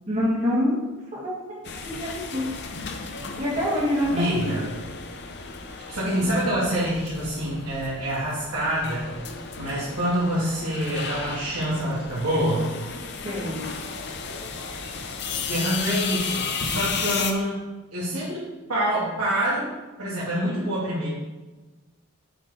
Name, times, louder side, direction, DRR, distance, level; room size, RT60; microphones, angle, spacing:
voice 1, 0.1-0.8 1.1-2.5 3.4-4.6 13.2-13.7, left 1 dB, 30° right, -6 dB, 2.3 m, -26 dB
sound 1, 1.6-17.3, left 5 dB, 50° left, 0.7 m, -34 dB
voice 2, 4.1-4.7 5.9-9.1 9.6-12.7 14.7-14.8 15.3-17.6 17.9-19.7 20.0-21.1, equal, 80° right, -9 dB, 2.2 m, -26 dB
7.6 x 4.4 x 4.9 m, 1.2 s
head